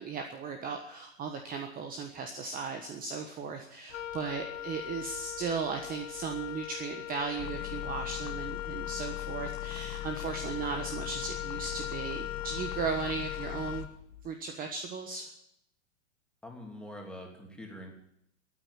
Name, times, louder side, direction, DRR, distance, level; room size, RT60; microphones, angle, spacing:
voice 1, 0.0-13.9 14.2-15.3, right 5 dB, 20° right, 5 dB, 1.3 m, -36 dB
Wind instrument woodwind instrument, 3.9-14.3, left 12 dB, 75° left, 0.8 m, -40 dB
sound 1, 7.4-13.9, left 16 dB, 30° left, 1.0 m, -41 dB
voice 2, 16.4-17.9, left 1 dB, ahead, 0 dB, 3.2 m, -44 dB
13.5 x 9.1 x 9.9 m, 0.76 s
hypercardioid pair, 115°, 40 cm